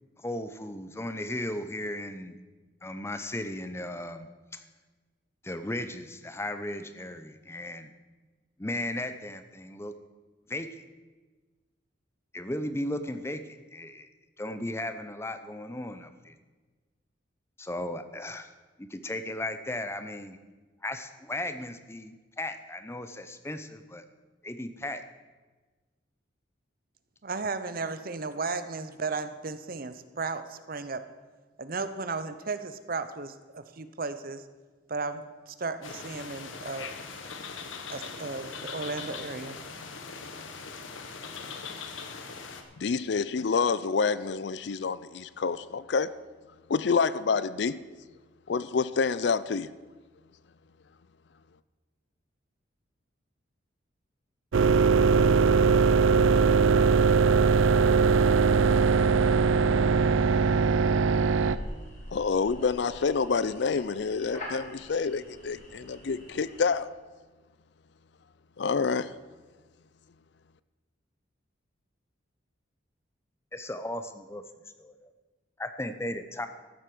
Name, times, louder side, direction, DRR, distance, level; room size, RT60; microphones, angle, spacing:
voice 1, 0.2-2.4 2.8-4.6 5.4-7.9 8.6-9.9 10.5-10.7 12.3-13.4 13.7-14.1 14.4-16.3 17.6-18.5 18.8-20.4 20.8-24.0 24.4-25.0 73.5-74.4 74.8-75.1 75.6-76.5, left 1 dB, 15° left, 10 dB, 0.6 m, -36 dB
voice 2, 27.2-31.0 31.6-34.4 34.9-36.9 37.9-39.6, right 4 dB, 50° right, 11 dB, 0.7 m, -35 dB
Bali Night Rain, 35.8-42.6, left 5 dB, 85° left, 1.2 m, -41 dB
voice 3, 42.8-46.1 46.7-47.8 48.5-49.7 62.1-66.9 68.6-69.1, left 5 dB, 60° left, 16 dB, 0.4 m, -27 dB
sound 1, 54.5-61.6, right 5 dB, 85° right, 0.5 m, -21 dB
sound 2, 60.6-66.7, left 1 dB, 40° left, 2.7 m, -45 dB
14.0 x 8.0 x 6.1 m, 1.3 s
head